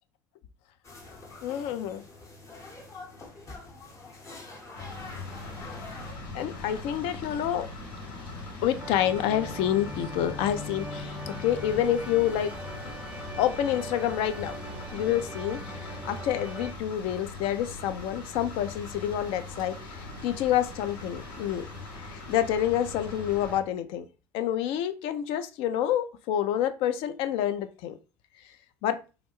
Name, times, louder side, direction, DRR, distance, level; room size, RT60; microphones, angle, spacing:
sound 1, 0.8-6.1, left 3 dB, 30° left, 0.8 m, -45 dB
voice 1, 1.4-2.0 6.3-7.7 8.6-12.5 13.4-14.6 14.9-21.7 22.0-24.1 24.3-28.0 28.8-29.0, left 11 dB, 60° left, 10 dB, 0.3 m, -28 dB
sound 2, 4.8-23.6, left 2 dB, 75° left, 0.9 m, -41 dB
sound 3, 8.8-16.7, equal, 10° right, 0.5 m, -40 dB
2.4 x 2.1 x 3.0 m, 0.32 s
hypercardioid pair, 70°, 11 cm